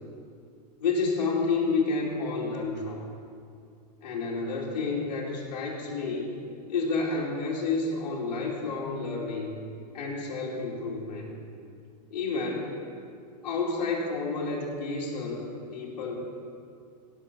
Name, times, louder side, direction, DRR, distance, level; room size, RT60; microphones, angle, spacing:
voice 1, 0.8-3.0 4.0-6.3 6.7-9.6 9.9-11.3 12.1-12.8 13.4-15.5 15.7-16.1, left 4 dB, 90° left, -4 dB, 2.7 m, -30 dB
16.0 x 6.8 x 6.9 m, 2.4 s
supercardioid pair, 140°, 21 cm